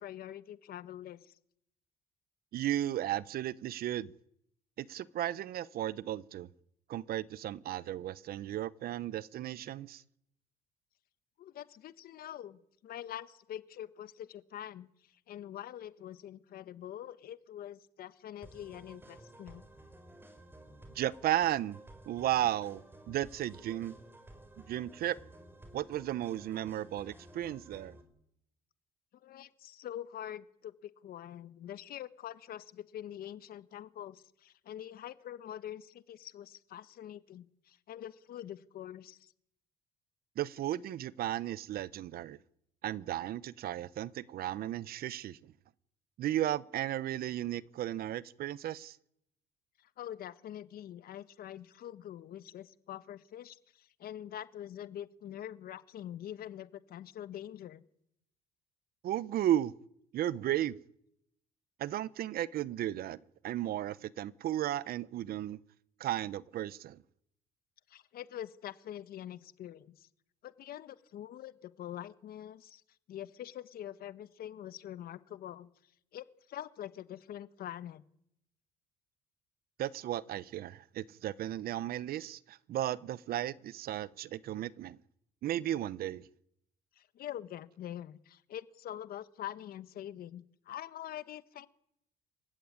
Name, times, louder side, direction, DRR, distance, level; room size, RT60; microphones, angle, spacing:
voice 1, 0.0-1.3 11.4-14.9 15.3-19.6 29.2-39.3 49.8-57.8 67.9-70.1 70.4-72.8 73.1-75.7 76.1-78.0 87.0-91.7, left 11 dB, 60° left, 1.3 m, -45 dB
voice 2, 2.5-4.1 4.8-6.5 6.9-10.0 20.9-21.8 22.1-23.9 24.7-25.2 25.7-28.0 40.4-42.4 42.8-45.5 46.2-49.0 59.0-59.7 60.1-60.8 61.8-63.2 63.4-65.6 66.0-67.0 79.8-85.0 85.4-86.3, right 12 dB, 65° right, 0.9 m, -34 dB
sound 1, 18.4-28.0, right 1 dB, 15° right, 4.5 m, -54 dB
27.0 x 16.0 x 9.6 m
cardioid pair, 110°, 17 cm